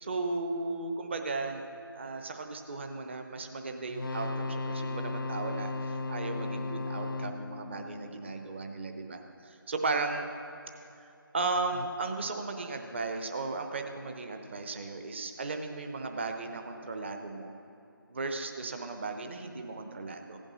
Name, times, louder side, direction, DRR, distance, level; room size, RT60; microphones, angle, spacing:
voice 1, 0.0-1.7 1.9-10.3 11.0-17.5 18.1-20.4, right 3 dB, 30° right, 5 dB, 0.9 m, -36 dB
sound 1, 3.9-8.9 11.7-11.9, left 2 dB, 65° left, 0.5 m, -36 dB
15.5 x 8.9 x 6.3 m, 2.7 s
figure-of-eight pair, 160°, 12 cm